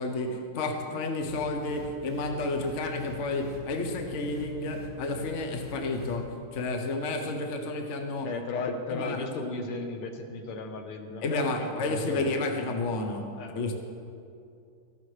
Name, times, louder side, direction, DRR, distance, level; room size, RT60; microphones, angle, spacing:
voice 1, 0.0-8.3 8.9-9.3 11.2-13.7, left 2 dB, 55° left, 4 dB, 0.8 m, -31 dB
sound 1, 1.2-6.3, left 3 dB, 25° left, 1.6 m, -42 dB
voice 2, 8.2-12.4 13.4-13.6, left 3 dB, 80° left, 5 dB, 1.8 m, -35 dB
14.5 x 11.5 x 3.3 m, 2.5 s
omnidirectional pair, 2.4 m